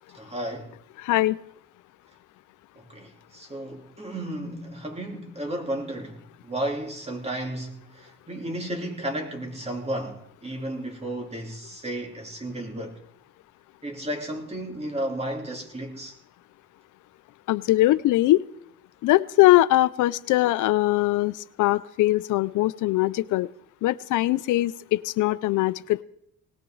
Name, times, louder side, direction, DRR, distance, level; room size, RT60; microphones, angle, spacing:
voice 1, 0.1-0.7 2.8-13.0 13.8-16.1, right 1 dB, 20° right, 3.2 m, -33 dB
voice 2, 1.0-1.4 17.5-18.4 19.0-23.5 23.8-26.0, left 17 dB, 85° left, 0.5 m, -21 dB
19.0 x 17.0 x 3.9 m
cardioid pair, 90°, 30 cm